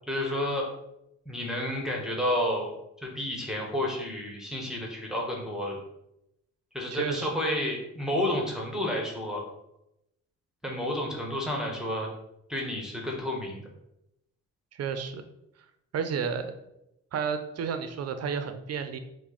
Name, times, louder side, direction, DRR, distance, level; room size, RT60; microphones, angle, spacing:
voice 1, 0.1-0.7 1.3-2.7 3.0-5.8 6.7-9.4 10.6-12.1 12.5-13.6, left 1 dB, ahead, -1 dB, 1.0 m, -30 dB
voice 2, 6.9-7.3 14.7-15.2 15.9-16.5 17.1-19.0, right 6 dB, 55° right, 8 dB, 0.6 m, -31 dB
5.8 x 2.2 x 4.0 m, 0.84 s
cardioid pair, 90°, 30 cm